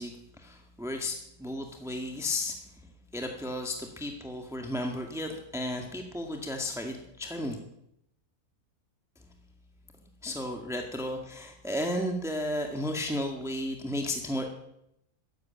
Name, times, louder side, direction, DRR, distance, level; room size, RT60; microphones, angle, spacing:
voice 1, 0.0-2.6 3.1-7.6 10.2-14.5, left 1 dB, ahead, 3 dB, 1.8 m, -33 dB
14.0 x 11.5 x 8.7 m, 0.78 s
omnidirectional pair, 1.6 m